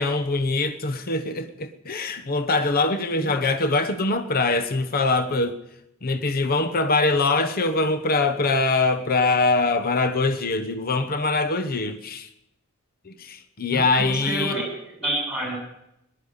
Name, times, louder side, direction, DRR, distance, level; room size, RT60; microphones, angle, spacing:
voice 1, 0.0-5.6 6.0-12.3 13.0-14.6, left 3 dB, 45° left, 1.0 m, -23 dB
voice 2, 13.7-14.6 15.0-15.5, right 1 dB, 5° right, 7.7 m, -28 dB
19.0 x 11.5 x 6.6 m
head